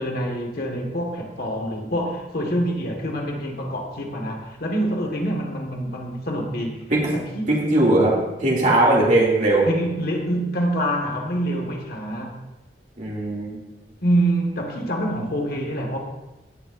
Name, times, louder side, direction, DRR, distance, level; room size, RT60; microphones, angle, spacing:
voice 1, 0.0-6.8 7.1-7.5 9.7-12.4 14.0-16.0, right 1 dB, 60° left, 1 dB, 1.8 m, -26 dB
voice 2, 7.5-9.7 13.0-13.6, right 1 dB, 45° right, -4 dB, 2.6 m, -19 dB
16.5 x 8.7 x 2.6 m, 1.0 s
head